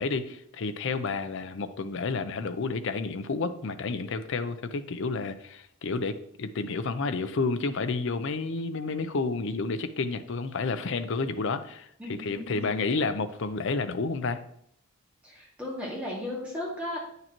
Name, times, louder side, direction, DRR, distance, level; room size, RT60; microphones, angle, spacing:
voice 1, 0.0-11.9 12.2-14.4, left 4 dB, 55° left, 10 dB, 0.5 m, -30 dB
voice 2, 12.0-12.7 15.2-17.0, left 1 dB, 5° right, -5 dB, 2.0 m, -35 dB
8.9 x 6.6 x 3.0 m, 0.71 s
head